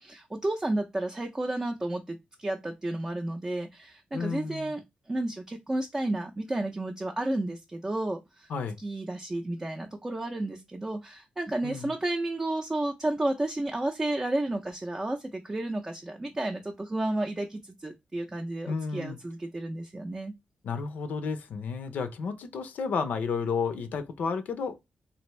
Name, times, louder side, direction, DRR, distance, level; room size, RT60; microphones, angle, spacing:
voice 1, 0.0-8.5 8.8-20.3, right 1 dB, 15° right, 0.5 m, -32 dB
voice 2, 4.1-4.7 8.5-8.8 11.6-11.9 18.7-19.2 20.6-24.8, left 5 dB, 75° left, 0.6 m, -32 dB
3.3 x 2.5 x 3.1 m
wide cardioid pair, 135°, 3 cm